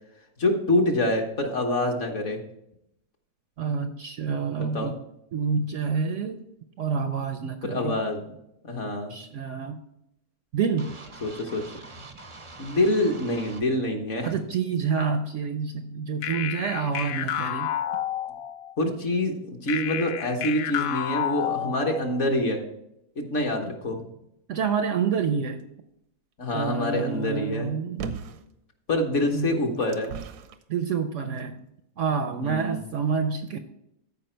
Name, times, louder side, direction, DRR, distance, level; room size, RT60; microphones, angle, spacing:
voice 1, 0.4-2.4 4.6-4.9 7.6-8.2 8.6-9.1 11.2-11.6 12.6-14.3 18.8-22.6 23.2-24.0 26.4-27.7 28.9-30.1 32.3-32.8, left 1 dB, 50° left, 3 dB, 1.4 m, -26 dB
voice 2, 3.6-4.9 5.3-6.4 6.8-8.0 9.1-9.8 10.5-10.9 14.2-17.7 24.5-25.6 26.5-28.1 29.3-29.6 30.7-31.6 32.0-33.6, right 6 dB, 65° right, 8 dB, 0.8 m, -28 dB
sound 1, 10.8-13.6, right 3 dB, 40° right, 0.4 m, -45 dB
sound 2, 16.2-18.7 19.7-22.2, left 10 dB, 70° left, 0.9 m, -30 dB
sound 3, 28.0-28.5 29.3-30.6 31.4-31.5, right 6 dB, 85° right, 1.2 m, -36 dB
13.5 x 4.8 x 4.4 m, 0.80 s
omnidirectional pair, 1.7 m